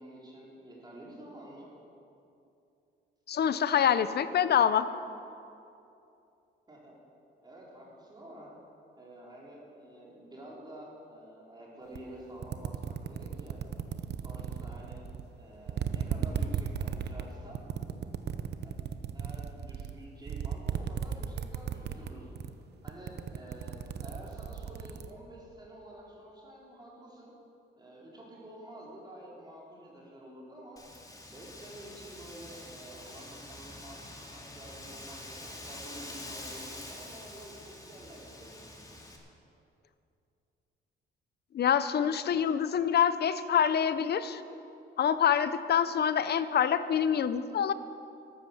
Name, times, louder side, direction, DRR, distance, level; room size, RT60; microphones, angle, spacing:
voice 1, 0.0-1.7 6.7-6.9 7.4-8.5 8.9-13.6 14.2-15.0 15.4-17.6 18.6-18.7 19.1-22.3 22.8-27.4 27.7-30.8 31.2-34.0 34.3-38.7, right 1 dB, 20° right, -5 dB, 4.6 m, -49 dB
voice 2, 3.3-4.9 41.5-44.4 45.0-47.7, left 8 dB, 55° left, 13 dB, 0.8 m, -26 dB
sound 1, 12.0-12.1 12.4-15.3 15.7-22.1 22.4-22.6 22.9-25.1, right 8 dB, 55° right, 0.9 m, -35 dB
Wind, 30.8-39.2, left 1 dB, 20° left, 2.8 m, -46 dB
13.5 x 12.0 x 7.2 m, 2.7 s
cardioid pair, 90°, 20 cm